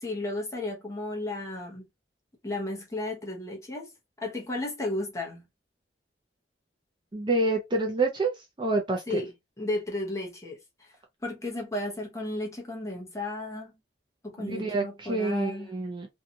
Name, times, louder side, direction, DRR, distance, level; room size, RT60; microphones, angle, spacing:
voice 1, 0.0-1.8 2.4-3.9 4.2-5.4 9.1-9.3 9.6-11.0 11.2-13.7 14.2-15.7, left 2 dB, 15° left, 0.8 m, -34 dB
voice 2, 7.1-9.2 14.4-16.1, right 2 dB, 25° right, 0.5 m, -28 dB
2.6 x 2.3 x 2.7 m
head